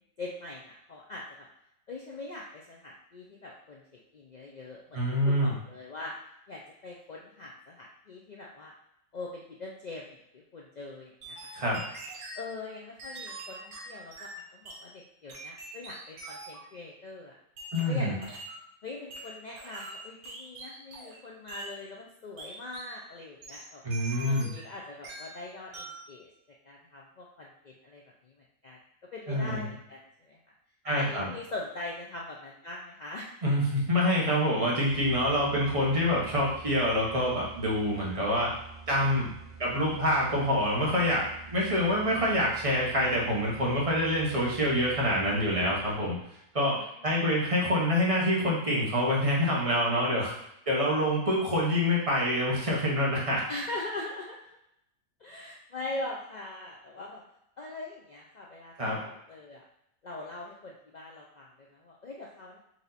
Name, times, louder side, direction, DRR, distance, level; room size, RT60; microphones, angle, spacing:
voice 1, 0.2-1.5 1.9-3.8 4.1-6.1 6.5-8.7 9.1-11.5 12.4-17.4 17.9-18.3 18.8-23.8 24.3-26.3 26.6-28.3 28.6-28.8 29.1-30.4 30.8-33.3 46.7-47.2 53.5-54.4 55.2-57.2 57.6-59.6 60.0-62.6, left 2 dB, 85° left, -2 dB, 0.3 m, -42 dB
voice 2, 4.9-5.5 11.5-11.8 17.7-18.2 23.8-24.5 29.3-29.7 30.8-31.3 33.4-38.5 38.9-39.3 39.6-46.2 46.5-50.3 50.7-53.4 58.8-59.0, equal, 25° right, -4 dB, 1.1 m, -26 dB
sound 1, 11.2-12.5 13.0-14.9 15.3-16.7 17.6-18.6 19.1-21.2 21.5-21.8 22.4-23.0 23.4-24.7 25.0-25.4 25.7-26.1, right 2 dB, 85° right, 1.4 m, -44 dB
sound 2, 34.8-46.2, right 5 dB, 40° right, 1.7 m, -48 dB
4.7 x 2.7 x 4.0 m, 0.80 s
omnidirectional pair, 1.5 m